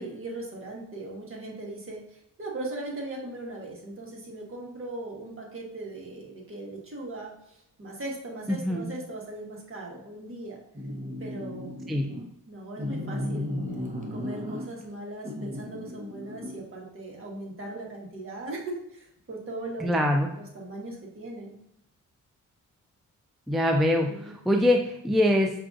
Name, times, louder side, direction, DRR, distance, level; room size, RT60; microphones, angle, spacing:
voice 1, 0.0-10.6 11.2-11.7 12.5-13.5 14.1-19.9 20.4-21.5 24.1-24.3, right 2 dB, 40° right, -2 dB, 1.4 m, -39 dB
voice 2, 8.5-8.9 11.9-12.1 19.8-20.3 23.5-25.5, left 1 dB, ahead, 2 dB, 0.4 m, -24 dB
sound 1, 10.7-12.3 12.8-14.9 15.2-16.6, left 1 dB, 25° right, 0.9 m, -35 dB
5.6 x 2.5 x 2.5 m, 0.76 s
cardioid pair, 75°, 32 cm